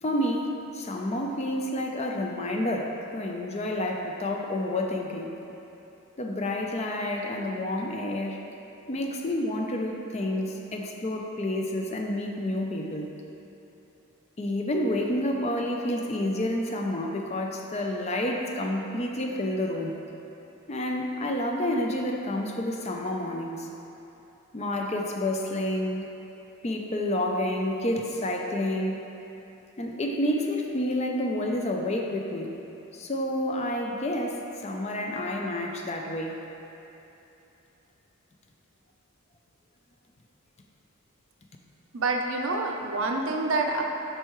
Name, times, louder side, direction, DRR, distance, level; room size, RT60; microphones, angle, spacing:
voice 1, 0.0-5.3 6.2-8.4 8.9-13.1 14.4-19.9 20.7-23.7 24.5-26.1 26.6-29.0 29.8-32.5 32.9-36.4, left 1 dB, 30° left, 1 dB, 0.4 m, -29 dB
voice 2, 41.9-43.8, right 3 dB, 65° right, 2 dB, 0.6 m, -27 dB
7.9 x 5.6 x 3.0 m, 3.0 s
head